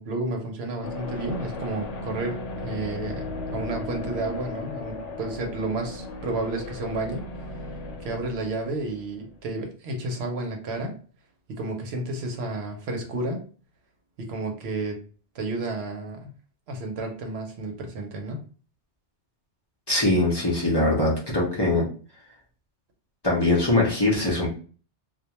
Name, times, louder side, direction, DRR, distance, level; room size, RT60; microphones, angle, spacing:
voice 1, 0.0-7.3 8.0-11.0 11.5-13.4 14.2-15.0 15.3-16.3 16.7-18.4, right 2 dB, 70° right, 2 dB, 0.9 m, -31 dB
sound 1, 0.8-9.4, left 2 dB, 90° left, 0.9 m, -36 dB
voice 2, 19.9-21.9 23.2-24.5, left 2 dB, 30° left, -4 dB, 0.5 m, -22 dB
2.3 x 2.2 x 2.8 m, 0.40 s
omnidirectional pair, 1.2 m